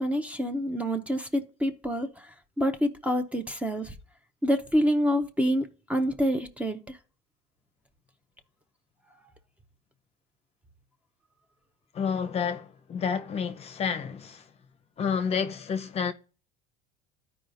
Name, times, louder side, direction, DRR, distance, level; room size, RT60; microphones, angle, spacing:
voice 1, 0.0-4.0 4.4-7.0, equal, 5° right, 0.7 m, -27 dB
voice 2, 11.9-14.5 15.0-16.1, left 6 dB, 30° left, 0.7 m, -30 dB
13.0 x 4.8 x 2.6 m
supercardioid pair, 115°, 20 cm